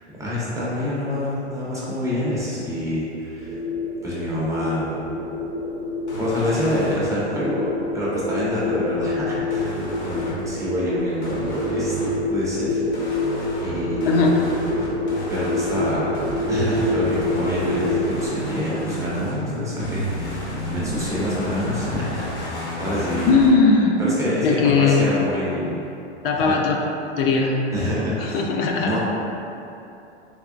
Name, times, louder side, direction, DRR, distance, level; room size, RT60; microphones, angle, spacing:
voice 1, 0.2-3.6 4.0-5.0 6.2-13.1 13.6-14.1 15.3-16.2 16.5-23.4 24.0-25.8 26.4-26.6 27.7-28.4 28.8-29.0, equal, 10° right, -9 dB, 0.5 m, -27 dB
sound 1, 3.4-18.3, left 2 dB, 85° right, 0.5 m, -27 dB
sound 2, 6.1-6.9 9.5-10.4 11.2-12.1 12.9-19.4 19.8-23.5, equal, 75° left, 1.0 m, -31 dB
voice 2, 23.2-24.0 24.4-25.1 26.2-26.7 27.2-27.5 28.2-29.0, left 4 dB, 55° left, 0 dB, 0.5 m, -18 dB
3.4 x 2.9 x 2.5 m, 2.8 s
hypercardioid pair, 125°, 35 cm